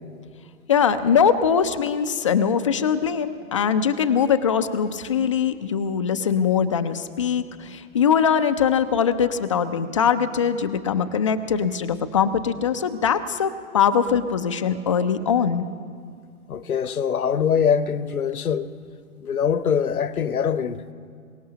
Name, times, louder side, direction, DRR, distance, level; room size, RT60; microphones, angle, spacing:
voice 1, 0.7-15.6, left 7 dB, 25° left, 0.4 m, -22 dB
voice 2, 16.5-18.7 19.2-20.8, left 7 dB, 85° left, 0.8 m, -23 dB
23.0 x 19.0 x 2.9 m
hypercardioid pair, 130°, 43 cm